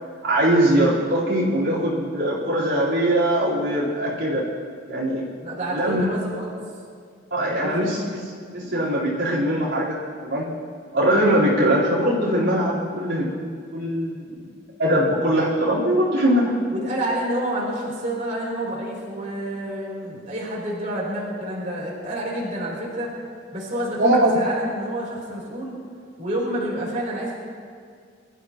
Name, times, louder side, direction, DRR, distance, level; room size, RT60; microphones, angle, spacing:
voice 1, 0.2-4.5 4.9-5.3 5.7-6.1 7.3-10.5 10.9-14.4 14.8-16.5 24.0-24.3, right 1 dB, 85° right, -8 dB, 4.0 m, -21 dB
voice 2, 5.4-6.5 7.5-8.0 16.7-23.1 23.5-25.7 26.2-27.4, right 1 dB, 40° right, -5 dB, 3.8 m, -28 dB
23.0 x 14.0 x 3.0 m, 2.1 s
head